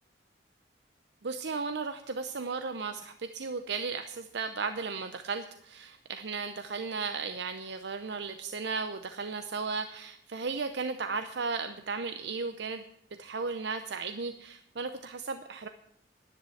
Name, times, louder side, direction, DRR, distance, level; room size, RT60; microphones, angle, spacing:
voice 1, 1.2-12.8 13.2-15.7, right 4 dB, 65° right, 8 dB, 0.7 m, -35 dB
10.5 x 10.0 x 7.8 m, 0.73 s
head